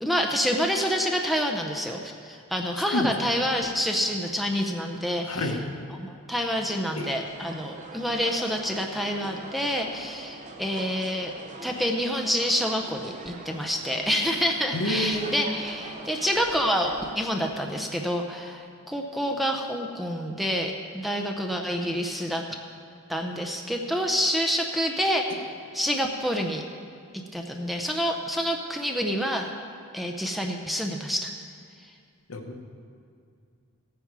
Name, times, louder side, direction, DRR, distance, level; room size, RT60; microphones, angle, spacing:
voice 1, 0.0-5.4 6.0-11.3 11.6-22.4 23.1-25.4 25.7-26.6 27.3-29.5 29.9-31.3, equal, ahead, 2 dB, 0.6 m, -27 dB
voice 2, 5.3-5.6 6.9-7.1 14.7-15.5 32.3-32.6, left 1 dB, 70° left, 3 dB, 1.3 m, -28 dB
sound 1, 6.9-17.1, right 3 dB, 30° right, 0.8 m, -43 dB
15.5 x 9.4 x 4.8 m, 2.3 s
head